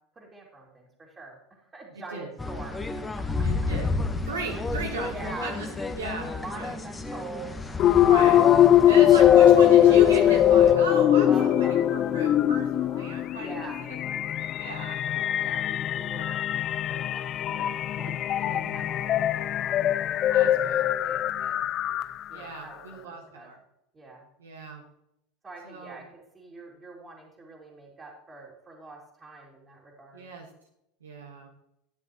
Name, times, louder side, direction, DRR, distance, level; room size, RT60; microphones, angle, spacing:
voice 1, 0.1-2.8 3.2-3.3 5.0-5.9 6.4-8.4 8.7-9.6 11.3-11.8 13.3-13.8 15.4-16.4 16.8-21.6 22.3-23.5 23.9-24.3 25.4-30.2, right 3 dB, 20° right, -4 dB, 2.5 m, -44 dB
sound 1, 2.4-10.7, left 3 dB, 15° left, 1.2 m, -31 dB
voice 2, 3.4-3.9 4.2-5.7 6.0-6.7 8.0-8.4 8.9-15.2 18.4-18.9 20.3-20.8 22.3-23.6 24.4-24.8 25.6-26.0 30.1-30.5 31.0-31.5, right 4 dB, 80° right, 0 dB, 1.5 m, -37 dB
sound 2, 7.8-22.4, left 11 dB, 40° left, 0.4 m, -21 dB
12.0 x 9.7 x 3.0 m, 0.80 s
figure-of-eight pair, 80°, 0 cm